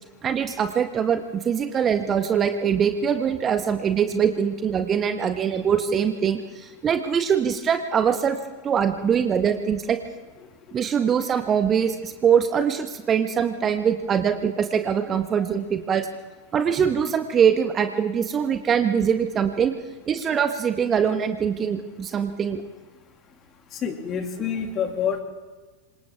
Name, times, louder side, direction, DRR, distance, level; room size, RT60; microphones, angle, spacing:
voice 1, 0.2-8.4 8.6-10.0 10.7-16.1 16.5-19.7 20.1-22.6, right 7 dB, 25° right, 8 dB, 1.5 m, -23 dB
voice 2, 23.8-25.2, left 7 dB, 30° left, 5 dB, 2.6 m, -27 dB
27.5 x 25.5 x 3.7 m, 1.3 s
figure-of-eight pair, 90°, 0 cm